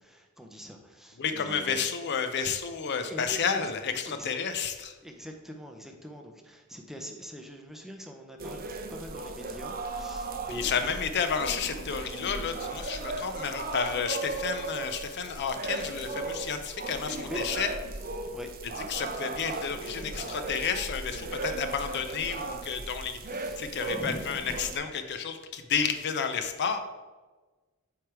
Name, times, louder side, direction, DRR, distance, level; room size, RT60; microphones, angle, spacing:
voice 1, 0.0-1.9 3.0-3.7 4.0-4.3 5.0-8.6 8.9-11.0 17.2-17.4 18.3-18.5 19.5-19.6 20.1-20.4 23.4-23.6 23.9-24.6, equal, ahead, 3 dB, 0.6 m, -43 dB
voice 2, 1.2-4.9 10.5-17.7 18.9-26.8, left 6 dB, 50° left, 8 dB, 0.5 m, -31 dB
sound 1, 8.4-24.8, right 3 dB, 45° right, 0.6 m, -37 dB
7.8 x 3.3 x 4.6 m, 1.3 s
head